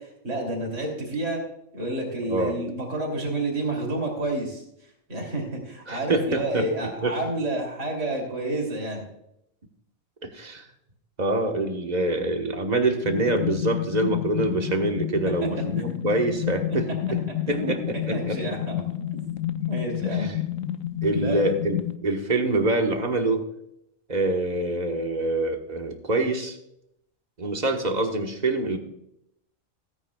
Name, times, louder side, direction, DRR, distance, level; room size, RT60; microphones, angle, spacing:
voice 1, 0.0-1.4 1.7-4.6 5.1-9.1 15.8-16.0 17.5-17.7 18.1-18.8 19.1-20.3 21.1-21.4, right 2 dB, 70° right, 0 dB, 3.4 m, -30 dB
voice 2, 2.3-2.6 5.9-7.1 10.2-10.6 11.2-17.2 17.5-18.4 20.2-20.4 21.0-23.4 24.1-26.6 27.4-28.8, right 2 dB, 35° right, 4 dB, 1.4 m, -25 dB
sound 1, 13.0-22.0, left 11 dB, 80° left, 1.1 m, -30 dB
16.5 x 9.7 x 2.4 m, 0.77 s
omnidirectional pair, 1.3 m